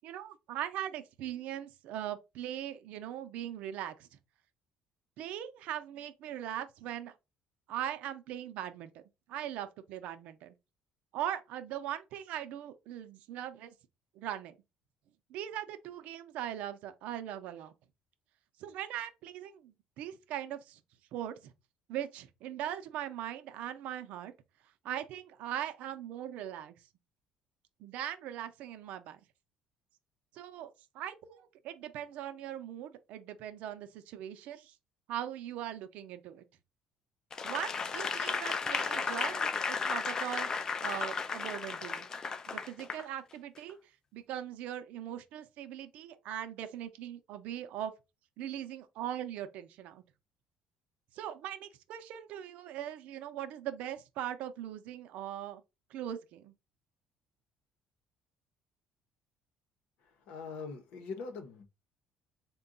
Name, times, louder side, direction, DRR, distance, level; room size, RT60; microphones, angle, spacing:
voice 1, 0.0-4.1 5.2-7.1 7.7-9.0 9.3-10.5 11.1-13.7 14.2-14.5 15.3-17.7 18.6-20.8 21.1-21.5 21.9-24.3 24.8-26.8 27.8-29.2 30.3-30.7 30.9-34.7 35.1-36.4 37.4-40.5 40.8-42.1 42.5-43.8 44.1-47.9 48.4-50.0 51.1-55.6 55.9-56.5, right 11 dB, 70° right, 0.6 m, -40 dB
Applause / Crowd, 37.3-43.0 43.6-43.7, left 5 dB, 25° left, 0.3 m, -34 dB
voice 2, 60.3-61.6, left 4 dB, 70° left, 0.8 m, -42 dB
3.7 x 2.2 x 3.8 m
cardioid pair, 145°, 2 cm